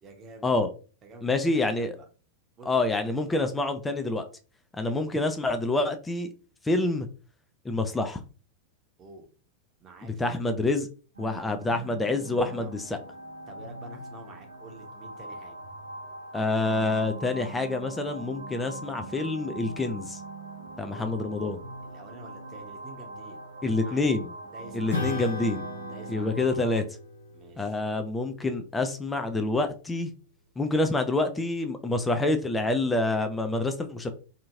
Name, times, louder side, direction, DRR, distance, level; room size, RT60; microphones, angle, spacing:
voice 1, 0.0-0.5 1.0-2.1 2.6-3.2 5.0-5.2 9.0-9.3 9.8-10.4 12.4-12.7 13.5-15.6 20.9-21.4 21.8-23.4 23.8-24.2 24.5-25.3 25.8-26.6 27.3-27.8, right 2 dB, 25° right, 3 dB, 0.9 m, -48 dB
voice 2, 1.2-2.0 2.6-4.2 4.7-6.3 6.6-7.1 7.7-8.2 10.0-10.9 11.2-13.0 16.3-20.2 20.8-21.6 23.6-24.3 24.7-25.6 26.1-26.8 27.6-30.1 30.6-34.1, left 2 dB, 10° left, 7 dB, 0.4 m, -27 dB
sound 1, 11.1-26.8, right 2 dB, 75° right, 0.6 m, -42 dB
Acoustic guitar / Strum, 24.9-29.7, left 4 dB, 75° left, 1.4 m, -37 dB
2.8 x 2.7 x 2.6 m, 0.37 s
figure-of-eight pair, 90°, 0 cm